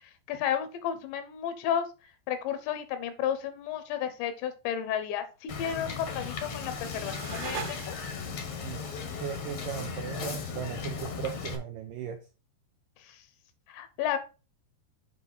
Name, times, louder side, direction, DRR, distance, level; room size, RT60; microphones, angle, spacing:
voice 1, 0.3-1.9 2.3-7.9 13.0-13.2 13.7-14.2, left 9 dB, 80° left, 10 dB, 3.2 m, -32 dB
Wind / Boat Water vehicle, 5.5-11.6, left 5 dB, 65° left, 1.5 m, -37 dB
sound 1, 6.1-8.4, right 6 dB, 65° right, 2.6 m, -41 dB
voice 2, 9.2-12.3, right 9 dB, 90° right, 5 dB, 1.9 m, -37 dB
8.2 x 4.7 x 4.1 m, 0.31 s
omnidirectional pair, 5.0 m